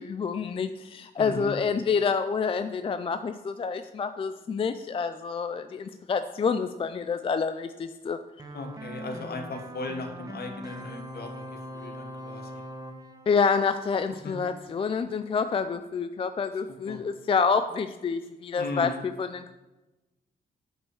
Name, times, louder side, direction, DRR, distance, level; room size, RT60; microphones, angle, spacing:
voice 1, 0.0-8.2 13.3-19.5, left 5 dB, 30° left, 9 dB, 0.4 m, -28 dB
voice 2, 1.2-1.5 8.5-12.5 14.2-14.4 16.7-17.0 18.6-19.0, left 3 dB, 60° left, 5 dB, 1.4 m, -37 dB
sound 1, 8.4-14.5, right 1 dB, 20° right, 0.9 m, -42 dB
8.8 x 5.4 x 6.3 m, 1.1 s
wide cardioid pair, 135°, 18 cm